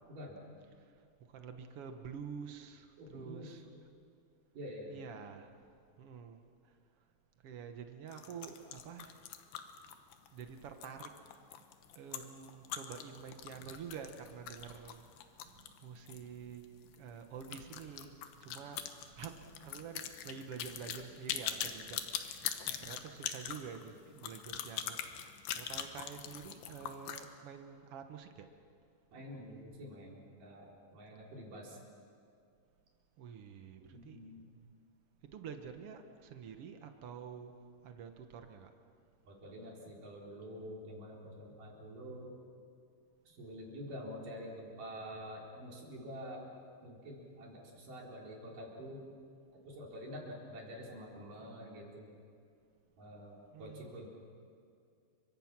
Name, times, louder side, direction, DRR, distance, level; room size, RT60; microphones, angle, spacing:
voice 1, 0.1-0.4 3.0-3.6 4.5-5.0 22.6-22.9 29.1-31.8 33.9-34.4 39.3-42.3 43.3-46.4 46.8-49.0 49.6-52.1 53.0-54.1, equal, 55° right, -2 dB, 5.5 m, -47 dB
voice 2, 1.3-3.6 4.9-5.5 6.0-6.4 7.4-9.2 10.3-11.1 11.9-25.3 25.5-28.5 33.2-34.2 35.3-37.5 37.8-38.7 53.5-54.1, right 7 dB, 80° right, 6 dB, 1.3 m, -48 dB
sound 1, 8.1-16.3 16.6-16.7 16.9-17.0 17.4-27.3, left 10 dB, 85° left, 3.2 m, -42 dB
29.5 x 24.0 x 6.0 m, 2.4 s
omnidirectional pair, 4.5 m